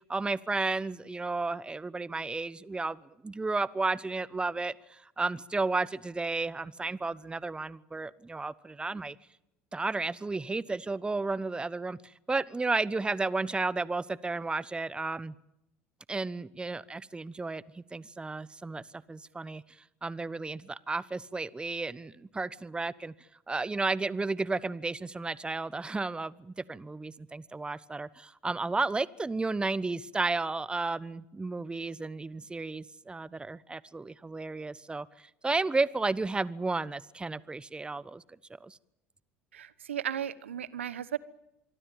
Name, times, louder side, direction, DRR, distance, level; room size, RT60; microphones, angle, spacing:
voice 1, 0.1-9.2 9.7-15.3 16.1-19.6 20.0-23.1 23.5-38.2 38.6-38.8, right 3 dB, 15° right, 19 dB, 1.1 m, -33 dB
voice 2, 39.5-41.2, right 9 dB, 85° right, 18 dB, 1.1 m, -35 dB
26.0 x 23.5 x 9.1 m, 0.87 s
hypercardioid pair, 75°, 6 cm